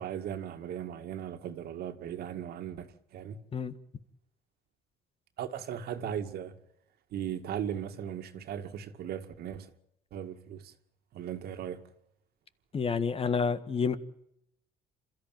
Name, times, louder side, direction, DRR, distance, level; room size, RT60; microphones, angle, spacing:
voice 1, 0.0-3.4 5.4-6.5 7.1-9.7 10.1-10.7 11.1-11.8, right 9 dB, 70° right, 2.2 m, -37 dB
voice 2, 12.7-14.0, left 5 dB, 35° left, 1.6 m, -29 dB
28.0 x 14.0 x 9.1 m
cardioid pair, 110°, 17 cm